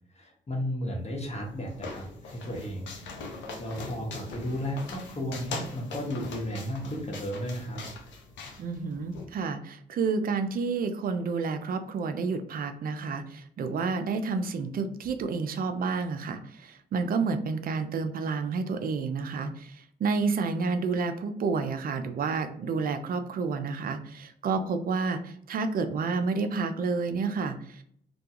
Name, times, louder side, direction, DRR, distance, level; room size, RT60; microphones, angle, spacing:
voice 1, 0.1-2.9 3.6-7.8, equal, 35° left, 0 dB, 1.0 m, -34 dB
sound 1, 1.1-9.2, left 3 dB, 70° left, 0.6 m, -41 dB
voice 2, 8.6-27.8, right 4 dB, 50° right, 8 dB, 0.4 m, -30 dB
2.3 x 2.3 x 2.9 m, 0.66 s
hypercardioid pair, 50°, 20 cm